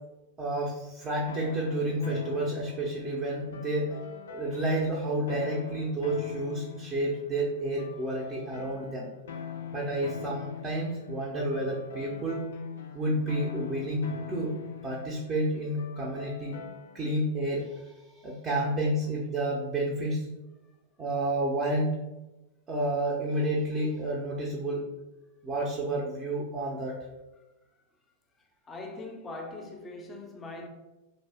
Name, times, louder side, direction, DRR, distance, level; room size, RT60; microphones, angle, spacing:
voice 1, 0.4-4.0 4.3-9.1 9.7-12.4 12.9-14.5 14.8-16.6 16.9-20.3 21.0-22.0 22.7-24.8 25.4-27.0, right 1 dB, 25° right, 0.6 m, -30 dB
sound 1, 1.3-17.2, left 8 dB, 75° left, 0.3 m, -42 dB
voice 2, 28.7-30.7, left 2 dB, 20° left, 0.5 m, -41 dB
2.6 x 2.1 x 3.4 m
hypercardioid pair, 110°, 0 cm